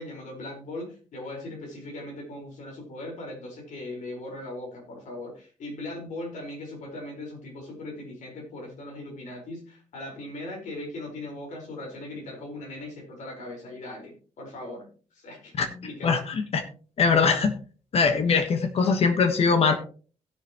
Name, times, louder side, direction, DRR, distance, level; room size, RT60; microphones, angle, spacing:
voice 1, 0.0-14.9 15.1-15.5 15.8-16.1, left 2 dB, 85° left, 0 dB, 4.7 m, -39 dB
voice 2, 16.0-16.6 17.0-17.5 17.9-19.7, left 5 dB, 55° left, 7 dB, 1.3 m, -22 dB
17.0 x 7.0 x 3.0 m, 0.39 s
wide cardioid pair, 165°, 12 cm